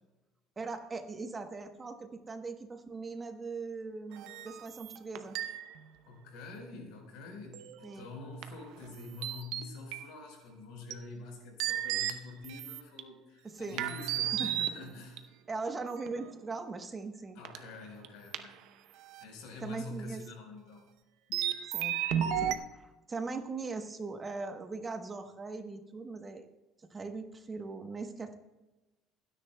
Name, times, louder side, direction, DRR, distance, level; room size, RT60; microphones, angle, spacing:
voice 1, 0.6-5.4 7.8-8.1 13.4-13.9 14.2-14.5 15.5-17.4 19.6-20.2 21.7-22.0 22.4-26.5 26.8-28.3, right 3 dB, 20° right, 7 dB, 1.0 m, -40 dB
sound 1, 4.1-5.8 7.5-8.0 8.4-8.9 9.2-10.1 10.9-11.0 11.6-13.0 13.8-15.2 16.1-16.4 17.5-17.6 18.0-18.1 18.3-18.5 19.1-19.2 21.3-22.6, right 10 dB, 75° right, 0.7 m, -34 dB
voice 2, 6.0-15.2 17.3-18.6 19.2-20.9 21.3-21.5, left 3 dB, 80° left, 2 dB, 4.1 m, -46 dB
29.0 x 10.0 x 2.2 m, 1.1 s
cardioid pair, 130°, 0 cm